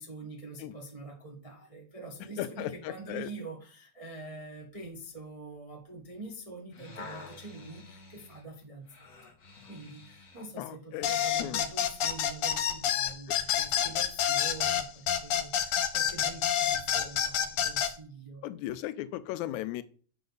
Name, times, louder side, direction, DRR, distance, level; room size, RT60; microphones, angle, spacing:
voice 1, 0.0-9.1 9.6-18.4, right 3 dB, 60° right, 0 dB, 0.3 m, -45 dB
voice 2, 2.4-3.3 10.6-11.1 11.4-11.6 18.4-19.8, left 14 dB, 90° left, 14 dB, 2.0 m, -36 dB
sound 1, 6.5-10.6 11.2-11.3, left 3 dB, 40° left, 1.4 m, -49 dB
sound 2, 11.0-17.9, left 9 dB, 65° left, 1.5 m, -28 dB
7.8 x 5.9 x 3.9 m, 0.42 s
omnidirectional pair, 3.3 m